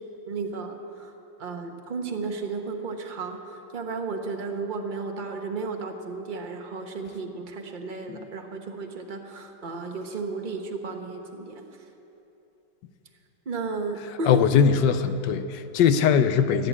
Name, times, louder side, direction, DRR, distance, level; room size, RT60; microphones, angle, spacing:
voice 1, 0.3-1.1 1.4-11.6 13.4-14.4, right 4 dB, 30° right, 3 dB, 1.1 m, -33 dB
voice 2, 14.3-16.7, left 7 dB, 75° left, 11 dB, 1.3 m, -21 dB
15.5 x 9.9 x 8.2 m, 2.9 s
omnidirectional pair, 2.0 m